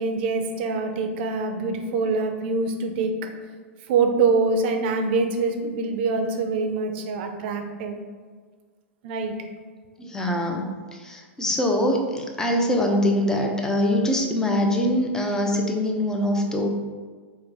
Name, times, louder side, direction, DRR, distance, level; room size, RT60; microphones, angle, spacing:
voice 1, 0.0-3.3 3.9-8.0 9.0-9.3, right 4 dB, 55° right, 5 dB, 0.5 m, -24 dB
voice 2, 10.0-10.6 10.9-16.7, left 1 dB, 10° left, 1 dB, 0.5 m, -23 dB
4.4 x 2.1 x 3.3 m, 1.5 s
hypercardioid pair, 105°, 7 cm